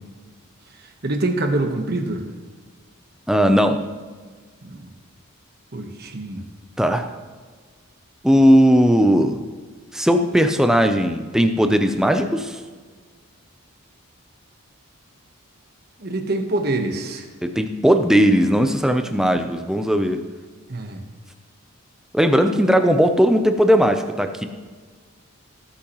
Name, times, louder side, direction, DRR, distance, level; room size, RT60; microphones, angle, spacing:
voice 1, 1.0-2.2 4.6-4.8 5.7-6.4 16.0-17.3 20.7-21.0, right 2 dB, 45° right, 5 dB, 1.2 m, -25 dB
voice 2, 3.3-3.8 6.8-7.1 8.2-9.4 9.9-12.6 17.4-20.2 22.1-24.5, equal, ahead, 6 dB, 0.6 m, -17 dB
18.5 x 8.6 x 3.1 m, 1.5 s
head